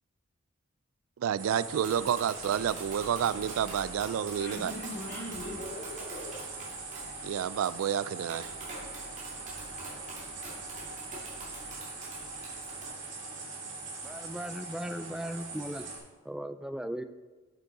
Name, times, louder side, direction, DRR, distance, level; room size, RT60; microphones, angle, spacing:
voice 1, 1.2-4.7 7.2-8.6, right 9 dB, 85° right, 18 dB, 0.3 m, -30 dB
sound 1, 1.4-16.0, right 3 dB, 60° right, 2.8 m, -42 dB
Tap, 1.6-12.9, right 2 dB, 35° right, 2.3 m, -46 dB
voice 2, 4.3-6.5, left 1 dB, 55° left, -7 dB, 2.0 m, -40 dB
voice 3, 14.0-15.9 16.3-17.0, right 1 dB, 5° right, 10 dB, 0.3 m, -37 dB
8.3 x 8.3 x 4.0 m, 1.3 s
head